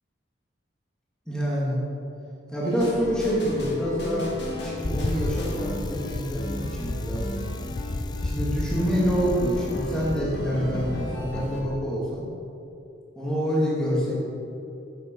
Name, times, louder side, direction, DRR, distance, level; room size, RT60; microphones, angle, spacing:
voice 1, 1.3-1.8 2.5-4.3 4.6-7.3 8.2-12.3 13.2-14.3, equal, 5° left, -7 dB, 1.8 m, -27 dB
sound 1, 2.6-11.6, left 1 dB, 65° left, 1.8 m, -34 dB
Bicycle, 4.8-10.2, left 2 dB, 25° left, 0.4 m, -31 dB
8.7 x 7.6 x 4.4 m, 2.8 s
head